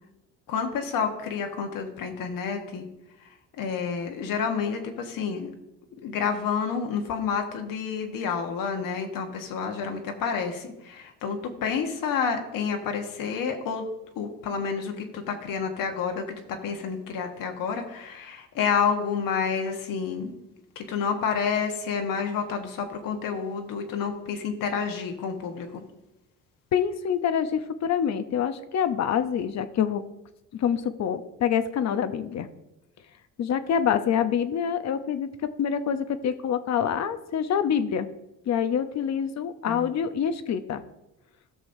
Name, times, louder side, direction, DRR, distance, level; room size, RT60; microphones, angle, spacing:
voice 1, 0.5-2.9 3.6-5.5 6.0-13.8 14.2-20.3 20.7-25.8 39.6-39.9, left 6 dB, 70° left, 4 dB, 1.4 m, -29 dB
voice 2, 26.7-30.0 30.5-32.5 33.4-35.3 35.6-38.1 38.5-40.8, left 8 dB, 50° left, 11 dB, 0.7 m, -26 dB
16.0 x 6.3 x 2.7 m, 0.94 s
cardioid pair, 95°, 35 cm